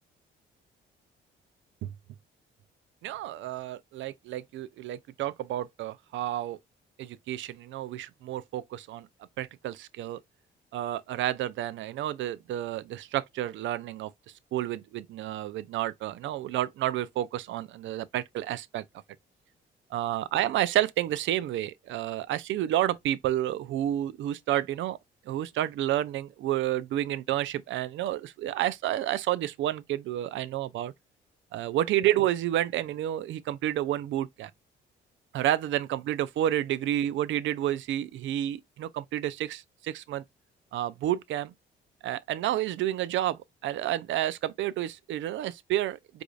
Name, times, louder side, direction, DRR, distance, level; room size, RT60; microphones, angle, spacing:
voice 1, 3.0-6.6 7.0-9.1 9.4-10.2 10.7-14.1 14.5-18.8 19.9-25.0 25.3-30.9 31.5-34.5 35.3-40.2 40.7-41.5 42.0-46.2, right 13 dB, 75° right, 0.4 m, -30 dB
4.7 x 2.5 x 2.3 m
cardioid pair, 90°, 20 cm